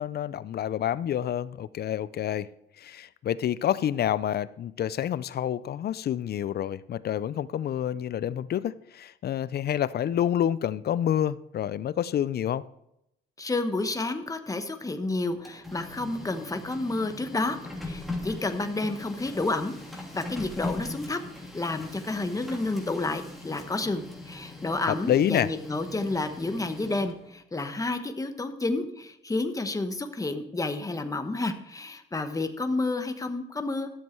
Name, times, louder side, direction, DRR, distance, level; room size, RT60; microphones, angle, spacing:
voice 1, 0.0-2.5 2.8-12.6 24.9-25.5, left 10 dB, 55° left, 0.5 m, -28 dB
voice 2, 13.4-17.6 17.8-21.2 21.5-33.9, left 2 dB, 15° left, 1.1 m, -30 dB
Printer, 15.3-27.3, left 2 dB, ahead, 2.9 m, -40 dB
13.0 x 7.5 x 4.6 m
cardioid pair, 90°, 20 cm